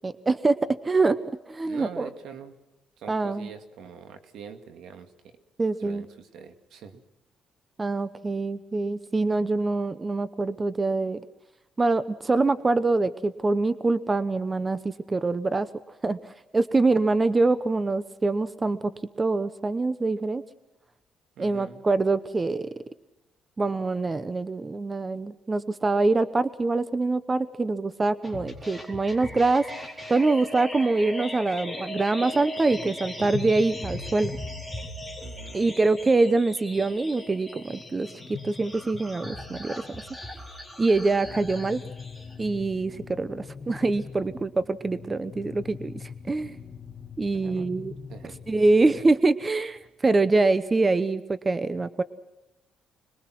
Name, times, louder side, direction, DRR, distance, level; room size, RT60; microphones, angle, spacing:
voice 1, 0.0-0.6 0.8-1.2 1.5-2.1 3.1-3.5 5.6-6.0 7.8-11.2 11.8-15.7 16.0-18.8 19.2-20.4 21.4-22.7 23.6-29.7 30.1-34.3 35.5-40.0 40.8-41.8 42.4-46.6 47.2-47.9 48.5-52.0, right 3 dB, 20° right, 14 dB, 0.9 m, -24 dB
voice 2, 1.6-2.5 3.0-5.3 5.8-7.0 21.4-21.8 35.2-35.7 47.3-47.7 48.1-48.3, right 6 dB, 75° right, 8 dB, 2.3 m, -44 dB
sound 1, 28.2-42.3, left 2 dB, 5° right, 4.4 m, -38 dB
sound 2, 41.2-49.1, left 5 dB, 35° left, 1.7 m, -43 dB
26.0 x 21.5 x 6.0 m, 0.98 s
cardioid pair, 115°, 0 cm